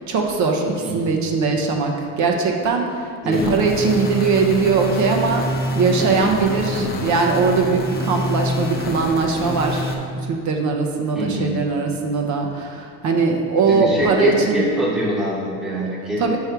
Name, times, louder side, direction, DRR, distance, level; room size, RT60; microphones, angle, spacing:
voice 1, 0.0-5.5 5.8-9.9 10.3-14.6 16.2-16.4, right 4 dB, 55° right, 2 dB, 0.8 m, -20 dB
voice 2, 0.8-1.2 3.2-3.6 6.0-6.3 6.7-7.0 11.1-11.5 13.6-16.4, equal, 5° right, -7 dB, 1.0 m, -24 dB
sound 1, 3.3-10.0, left 1 dB, 25° left, 0.8 m, -27 dB
5.5 x 4.4 x 4.5 m, 2.2 s
cardioid pair, 110°, 36 cm